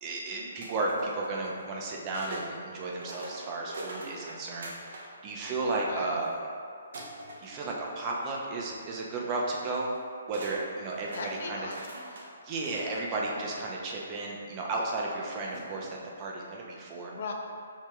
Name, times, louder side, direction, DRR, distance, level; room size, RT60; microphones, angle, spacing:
voice 1, 0.0-6.3 7.4-9.9 10.3-11.2 11.4-11.7 12.4-17.1, right 2 dB, 30° right, -2 dB, 0.5 m, -33 dB
sound 1, 0.6-2.5 2.9-5.1 5.4-6.3 6.9-8.3 8.7-8.9 9.9-10.0 10.3-13.1 13.9-14.0 15.4-16.1, right 2 dB, 65° right, 0.7 m, -45 dB
voice 2, 5.8-6.1 11.1-12.2 13.1-13.6 17.1-17.3, left 4 dB, 60° left, 1 dB, 0.4 m, -40 dB
4.7 x 2.7 x 2.2 m, 2.3 s
hypercardioid pair, 140°, 0 cm